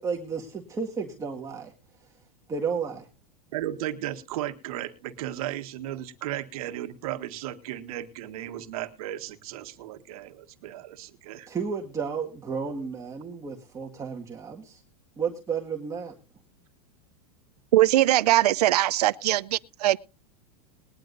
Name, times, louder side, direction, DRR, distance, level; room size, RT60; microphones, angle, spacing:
voice 1, 0.0-1.7 2.5-3.1 11.5-14.8 15.2-16.1, right 5 dB, 15° right, 1.8 m, -32 dB
voice 2, 3.5-11.5, right 13 dB, 70° right, 1.6 m, -35 dB
voice 3, 17.7-20.0, right 14 dB, 85° right, 0.7 m, -21 dB
21.0 x 10.5 x 2.6 m
supercardioid pair, 145°, 20 cm